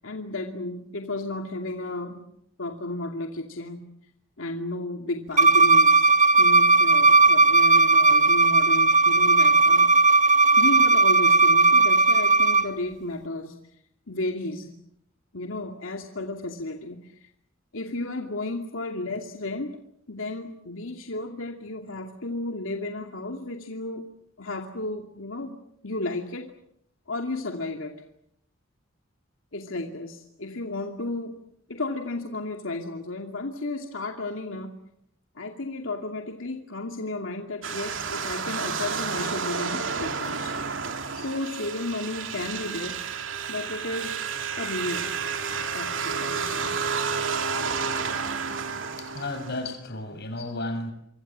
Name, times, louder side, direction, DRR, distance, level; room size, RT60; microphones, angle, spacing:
voice 1, 0.0-2.2 2.6-3.9 4.4-6.1 6.4-9.9 10.6-13.6 14.1-14.7 15.3-17.3 17.7-19.8 20.1-24.1 24.4-25.6 25.8-26.5 27.1-28.0 29.5-31.4 31.7-34.8 35.3-40.5 41.1-43.0 43.5-44.2 44.6-45.1 45.5-46.7, left 2 dB, 90° left, 3 dB, 2.5 m, -33 dB
Bowed string instrument, 5.4-12.6, right 3 dB, 35° right, 1.3 m, -17 dB
sound 1, 37.6-49.7, right 5 dB, 70° right, 2.8 m, -30 dB
voice 2, 48.4-50.9, left 2 dB, 55° left, 9 dB, 6.7 m, -34 dB
28.5 x 26.0 x 7.5 m, 0.73 s
head